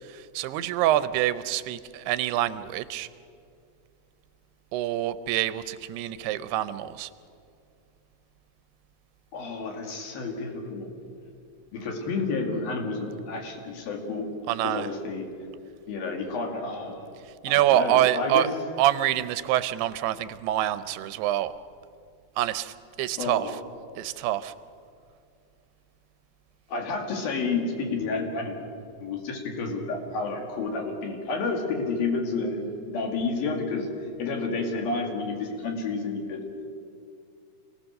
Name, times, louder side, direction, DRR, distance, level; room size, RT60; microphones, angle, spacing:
voice 1, 0.0-3.1 4.7-7.1 14.5-14.9 17.4-18.5 18.8-21.5 22.4-23.6 24.0-24.5, right 13 dB, 90° right, 13 dB, 2.7 m, -26 dB
voice 2, 9.3-10.9 11.7-14.3 14.6-15.3 15.9-17.1 17.5-18.5 23.2-23.6 26.7-28.6 29.0-33.9 34.2-36.4, left 3 dB, 70° left, 2 dB, 4.1 m, -30 dB
27.0 x 18.0 x 6.5 m, 2.4 s
omnidirectional pair, 4.5 m